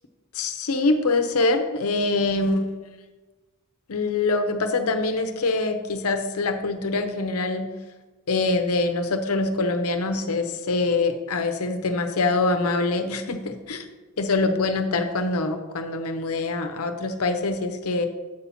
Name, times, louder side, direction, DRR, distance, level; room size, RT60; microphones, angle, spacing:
voice 1, 0.3-2.8 3.9-7.7 8.3-13.9 14.2-18.1, left 3 dB, 85° left, 7 dB, 0.7 m, -24 dB
7.9 x 4.2 x 5.7 m, 1.3 s
head